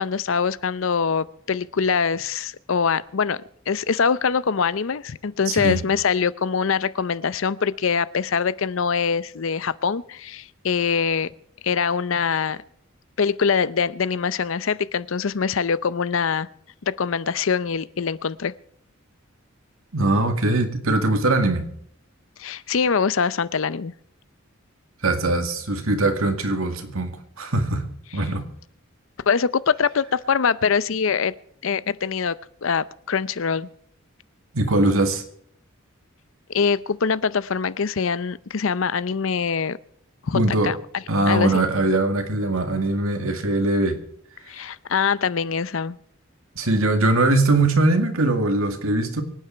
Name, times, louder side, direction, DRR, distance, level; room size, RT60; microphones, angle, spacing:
voice 1, 0.0-3.4 3.7-11.3 11.6-12.6 13.2-16.5 16.8-18.5 22.4-23.9 29.3-31.3 31.6-33.7 36.5-39.8 40.2-41.5 44.5-46.0, left 6 dB, 65° left, 18 dB, 0.6 m, -23 dB
voice 2, 5.5-5.8 19.9-21.7 25.0-27.8 28.1-28.5 34.5-35.2 40.3-40.7 41.1-44.0 46.6-49.2, right 2 dB, 85° right, 6 dB, 2.1 m, -21 dB
24.5 x 9.0 x 4.5 m, 0.68 s
head